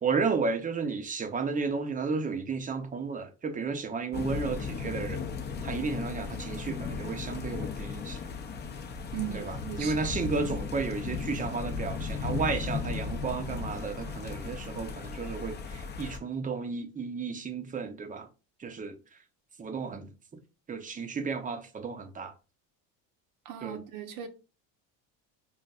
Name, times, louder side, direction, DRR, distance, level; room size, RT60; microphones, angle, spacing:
voice 1, 0.0-5.2 5.6-8.2 9.3-18.3 18.6-19.0 19.6-20.1 20.7-22.3 23.6-23.8, right 4 dB, 20° right, 0.6 m, -33 dB
sound 1, 4.1-16.2, left 5 dB, 30° left, 0.6 m, -36 dB
voice 2, 9.1-9.9 23.4-24.3, right 11 dB, 65° right, 1.0 m, -38 dB
5.4 x 2.5 x 2.3 m
cardioid pair, 120°, 37 cm